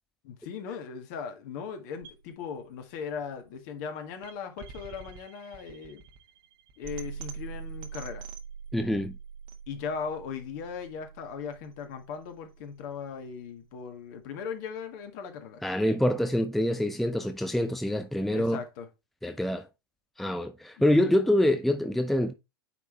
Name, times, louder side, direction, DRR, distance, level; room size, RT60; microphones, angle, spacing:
voice 1, 0.2-6.0 6.8-8.3 9.7-15.6 18.3-18.9, left 6 dB, 50° left, 1.6 m, -38 dB
sound 1, 2.0-14.0, right 7 dB, 40° right, 1.3 m, -45 dB
voice 2, 8.7-9.2 15.6-18.6 19.2-19.7 20.2-22.3, left 1 dB, ahead, 0.5 m, -26 dB
9.3 x 3.7 x 3.3 m
figure-of-eight pair, 95°, 13 cm